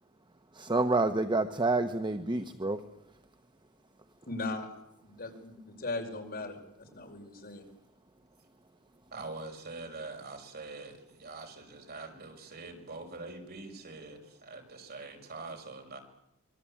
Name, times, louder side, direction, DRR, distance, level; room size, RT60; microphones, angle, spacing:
voice 1, 0.5-2.9, right 2 dB, 20° right, 8 dB, 1.1 m, -28 dB
voice 2, 4.3-4.7 5.0-7.6, left 2 dB, 45° left, 4 dB, 5.5 m, -38 dB
voice 3, 9.1-16.0, right 3 dB, 45° right, 4 dB, 6.0 m, -44 dB
25.5 x 24.0 x 8.8 m, 0.81 s
head